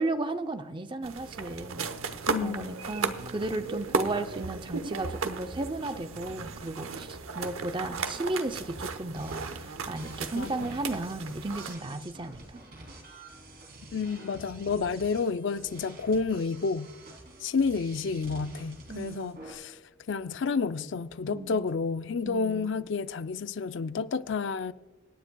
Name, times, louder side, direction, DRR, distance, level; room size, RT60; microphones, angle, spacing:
voice 1, 0.0-1.9 2.4-12.6 18.9-19.4 21.3-21.7 22.2-22.7, right 2 dB, 25° right, 0.5 m, -34 dB
sound 1, 1.0-11.7, right 4 dB, 90° right, 0.9 m, -35 dB
voice 2, 2.3-2.7 10.3-10.7 13.9-16.9 17.4-19.8 20.1-24.7, left 5 dB, 60° left, 0.4 m, -30 dB
sound 2, 9.1-19.5, right 2 dB, 50° right, 2.7 m, -48 dB
26.0 x 9.9 x 2.3 m
head